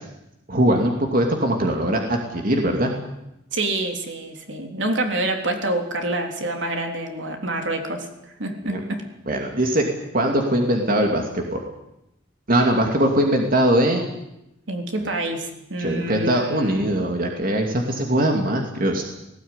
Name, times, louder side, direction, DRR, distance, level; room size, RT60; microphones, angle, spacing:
voice 1, 0.5-2.9 8.7-8.8 9.3-9.8 10.1-11.6 12.5-14.1 15.8-19.0, right 1 dB, 50° right, 2 dB, 2.8 m, -21 dB
voice 2, 3.5-8.1 8.4-9.0 14.7-16.9, right 2 dB, 70° right, 4 dB, 3.6 m, -27 dB
19.0 x 18.0 x 9.9 m, 0.86 s
head